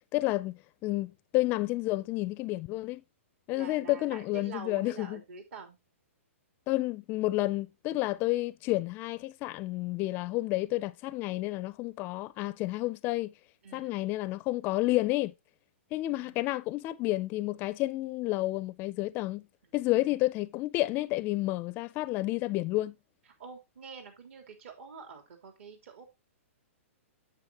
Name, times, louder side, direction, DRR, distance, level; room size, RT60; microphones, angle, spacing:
voice 1, 0.1-3.0 3.5-5.2 6.7-13.3 13.7-15.3 15.9-19.4 19.7-22.9, left 18 dB, 30° left, 0.4 m, -30 dB
voice 2, 3.5-5.8 13.6-14.0 16.2-16.5 19.7-20.2 23.4-26.1, right 5 dB, 65° right, 3.4 m, -47 dB
9.7 x 7.8 x 2.9 m
hypercardioid pair, 140°, 7 cm